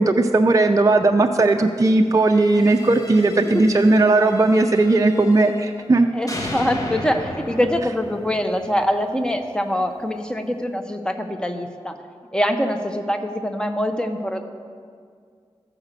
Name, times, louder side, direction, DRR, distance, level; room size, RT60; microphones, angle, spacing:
voice 1, 0.0-6.1, right 2 dB, 30° right, 4 dB, 0.4 m, -17 dB
sound 1, 2.1-6.0 6.3-9.3, left 1 dB, 30° left, 1.3 m, -36 dB
voice 2, 6.1-11.9 12.3-14.4, equal, 10° left, 6 dB, 0.8 m, -24 dB
14.0 x 4.9 x 6.7 m, 2.1 s
wide cardioid pair, 80°, 11 cm